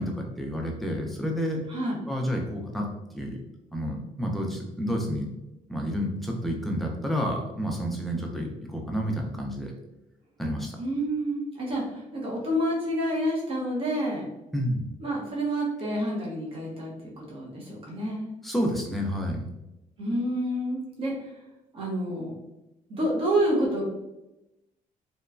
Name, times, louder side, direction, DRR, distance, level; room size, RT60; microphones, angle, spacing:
voice 1, 0.0-1.6 2.1-2.9 3.1-3.4 3.7-5.3 5.7-9.7 10.4-10.7 14.5-14.8 18.4-19.5, equal, ahead, 0 dB, 0.4 m, -29 dB
voice 2, 10.8-14.3 15.0-18.3 20.0-21.3 21.7-22.4 22.9-23.8, right 1 dB, 40° right, -4 dB, 0.8 m, -28 dB
3.0 x 2.1 x 2.4 m, 0.95 s
cardioid pair, 150°, 14 cm